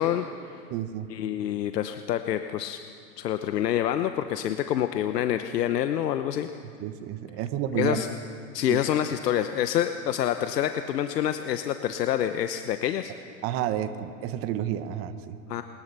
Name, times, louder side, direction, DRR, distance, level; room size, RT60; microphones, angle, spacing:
voice 1, 0.0-0.6 1.1-2.8 3.2-6.5 7.8-8.1 8.5-13.1 15.5-15.6, left 10 dB, 80° left, 9 dB, 1.1 m, -27 dB
voice 2, 0.7-1.1 6.8-8.0 8.7-8.8 13.4-15.4, right 10 dB, 30° right, 10 dB, 1.0 m, -30 dB
21.5 x 20.5 x 6.9 m, 2.6 s
hypercardioid pair, 140°, 48 cm